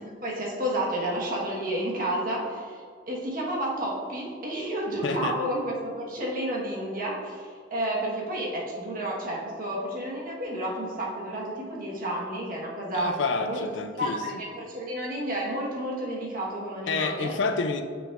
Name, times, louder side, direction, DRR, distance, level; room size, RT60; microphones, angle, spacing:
voice 1, 0.0-2.8 3.1-13.1 13.4-13.6 13.9-17.3, right 1 dB, 50° right, -3 dB, 1.3 m, -31 dB
voice 2, 5.0-5.4 12.9-14.2 16.9-17.8, left 4 dB, 70° left, 7 dB, 0.4 m, -28 dB
7.0 x 5.9 x 2.4 m, 2.1 s
head